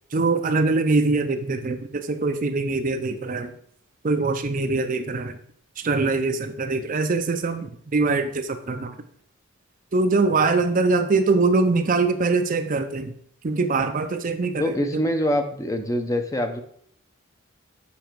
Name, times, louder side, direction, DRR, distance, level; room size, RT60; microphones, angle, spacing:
voice 1, 0.1-3.5 4.0-5.4 5.8-9.0 9.9-13.1 13.4-15.0, right 3 dB, 40° right, 8 dB, 0.5 m, -23 dB
voice 2, 14.6-16.6, left 1 dB, 15° left, 6 dB, 0.6 m, -24 dB
7.0 x 5.6 x 4.5 m, 0.63 s
head